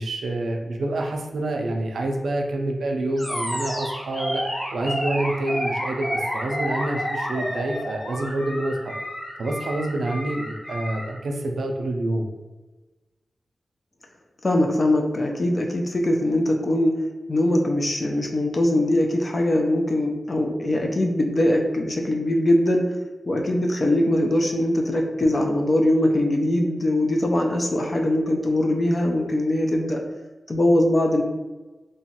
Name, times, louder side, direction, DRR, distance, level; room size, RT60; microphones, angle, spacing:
voice 1, 0.0-4.4 4.7-8.9 9.4-12.3, right 1 dB, 80° right, 2 dB, 0.4 m, -27 dB
Animal, 3.2-11.1, equal, 25° left, 1.0 m, -30 dB
voice 2, 14.4-16.9 17.3-22.8 23.3-30.0 30.5-31.2, left 1 dB, 45° left, 2 dB, 0.5 m, -21 dB
2.9 x 2.2 x 2.8 m, 1.2 s
cardioid pair, 65°, 0 cm